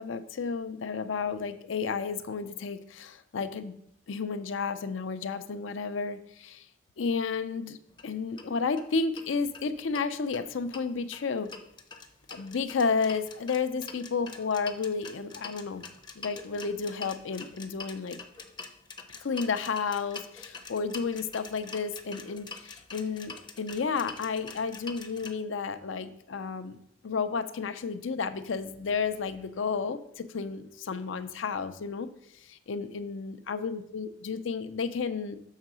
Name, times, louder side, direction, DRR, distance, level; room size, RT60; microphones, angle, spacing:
voice 1, 0.0-3.7 4.1-6.6 7.0-7.8 8.0-11.5 12.3-15.8 16.2-18.2 19.2-26.8 27.0-32.1 32.5-35.4, left 5 dB, 70° left, 11 dB, 0.5 m, -32 dB
sound 1, 7.9-8.0 8.4-8.5 8.8-8.9 9.2-10.1 10.3-25.3, left 4 dB, 20° left, 0.6 m, -45 dB
6.5 x 3.7 x 6.1 m, 0.72 s
head